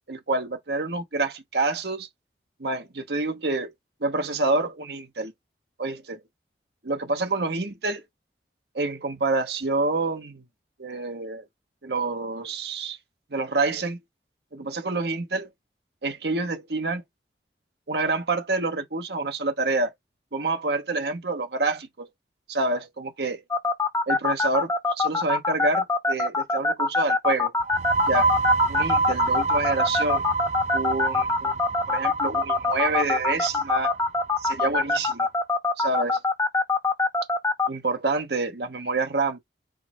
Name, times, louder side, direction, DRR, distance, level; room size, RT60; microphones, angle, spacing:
voice 1, 0.1-2.1 2.6-3.7 4.0-5.3 5.8-6.2 6.8-8.0 8.7-10.4 10.8-11.4 11.8-13.0 13.3-14.0 14.5-15.5 16.0-17.0 17.9-19.9 20.3-22.1 22.5-23.4 24.1-27.5 28.1-28.3 28.7-30.2 30.7-31.5 31.9-34.0 34.4-35.3 35.8-36.2 37.7-39.4, right 3 dB, 70° right, 1.0 m, -27 dB
sound 1, 23.5-37.7, left 3 dB, 15° left, 0.4 m, -23 dB
sound 2, 27.6-35.1, right 4 dB, 40° right, 0.4 m, -28 dB
4.9 x 2.1 x 4.3 m
head